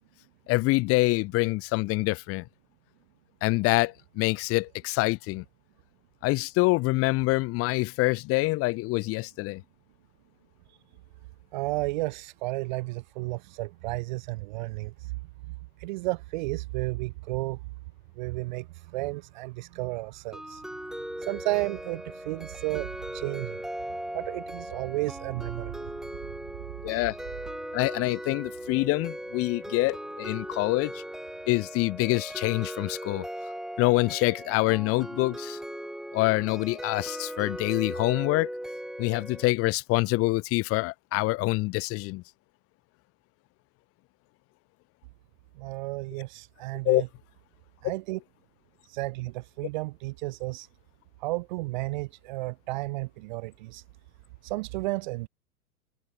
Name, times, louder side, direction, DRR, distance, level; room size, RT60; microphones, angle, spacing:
voice 1, 0.5-2.4 3.4-5.4 6.2-9.6 26.8-27.1 27.7-31.0 31.5-33.3 33.8-35.6 36.1-38.5 39.0-42.2 46.8-47.0, left 22 dB, 30° left, 1.1 m, -26 dB
voice 2, 11.5-14.9 15.8-17.6 18.2-18.7 18.9-20.6 21.2-23.6 24.1-25.9 45.6-47.1 47.8-48.2 48.9-50.7 51.2-53.8 54.4-55.3, right 22 dB, 30° right, 0.5 m, -32 dB
sound 1, 20.3-39.5, equal, ahead, 2.3 m, -38 dB
figure-of-eight pair, 95°, 45 cm